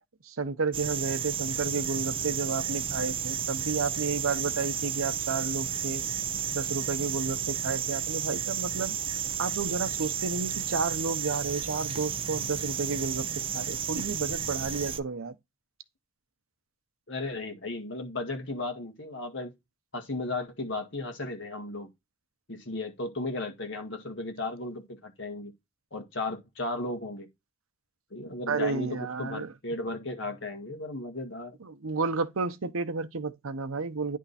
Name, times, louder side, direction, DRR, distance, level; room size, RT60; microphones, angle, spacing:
voice 1, 0.2-6.0 6.5-9.0 9.4-13.3 13.5-15.3 28.5-29.5 31.6-34.2, right 4 dB, 90° right, 0.9 m, -31 dB
sound 1, 0.7-15.0, right 8 dB, 25° right, 0.4 m, -32 dB
voice 2, 17.1-19.5 19.9-21.9 22.5-25.5 25.9-27.3 28.1-31.6, left 2 dB, 60° left, 1.9 m, -35 dB
10.0 x 3.6 x 4.1 m
head